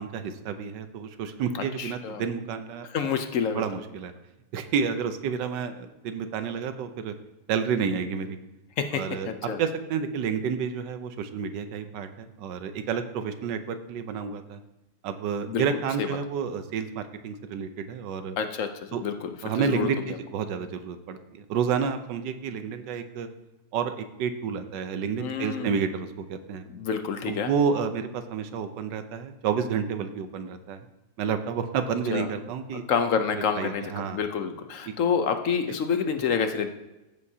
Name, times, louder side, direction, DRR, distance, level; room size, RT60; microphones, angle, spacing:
voice 1, 0.0-3.1 3.5-4.1 4.5-7.1 7.5-8.4 8.9-9.3 9.6-14.6 15.0-18.4 18.9-19.0 19.4-23.3 23.7-26.6 27.3-30.8 31.2-32.8 33.3-34.2 34.9-35.0, right 6 dB, 90° right, 9 dB, 1.4 m, -30 dB
voice 2, 1.8-2.2 2.9-3.6 8.8-9.6 15.5-15.6 16.0-16.1 18.4-18.7 19.0-20.2 25.2-25.8 26.7-27.5 32.1-32.3 32.7-36.7, left 6 dB, 60° left, 7 dB, 0.9 m, -28 dB
14.0 x 7.3 x 2.8 m, 0.99 s
omnidirectional pair, 1.8 m